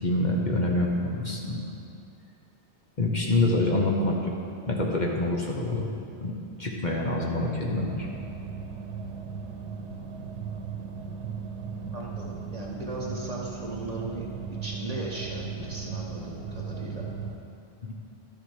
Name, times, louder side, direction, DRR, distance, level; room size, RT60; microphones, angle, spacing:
voice 1, 0.0-1.6 3.0-4.3 4.7-5.9 6.2-6.3 6.6-8.1 17.8-17.9, left 2 dB, 45° left, -1 dB, 1.1 m, -26 dB
sound 1, 7.8-17.4, right 5 dB, 85° right, 1.1 m, -37 dB
voice 2, 11.9-14.2 14.6-17.1, right 2 dB, 35° right, -2 dB, 1.2 m, -37 dB
12.0 x 7.1 x 4.9 m, 2.6 s
omnidirectional pair, 1.1 m